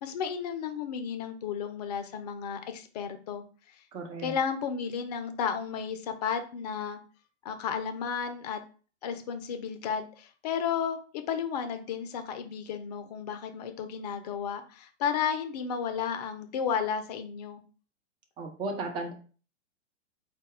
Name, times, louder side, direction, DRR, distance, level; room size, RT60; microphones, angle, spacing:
voice 1, 0.0-3.4 4.2-7.0 7.4-8.6 9.0-17.6, left 7 dB, 35° left, 7 dB, 0.5 m, -33 dB
voice 2, 3.9-4.3 18.4-19.1, right 3 dB, 15° right, 3 dB, 0.5 m, -35 dB
4.0 x 2.3 x 3.6 m, 0.38 s
figure-of-eight pair, 105°, 36 cm